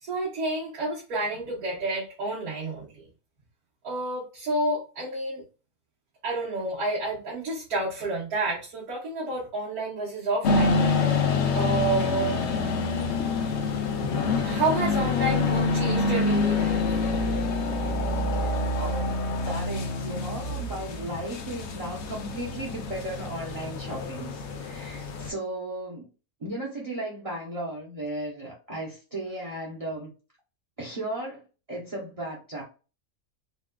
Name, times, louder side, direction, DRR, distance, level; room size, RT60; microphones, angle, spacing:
voice 1, 0.0-3.1 3.8-5.4 6.2-10.9 11.5-12.4 14.4-17.0, right 2 dB, 85° right, 1.7 m, -30 dB
sound 1, 10.4-25.3, left 3 dB, 60° left, 0.8 m, -27 dB
voice 2, 18.4-19.1 19.5-26.1 26.4-30.1 30.8-31.4 31.7-32.6, right 1 dB, 30° right, 0.8 m, -35 dB
4.1 x 2.4 x 2.2 m
omnidirectional pair, 1.5 m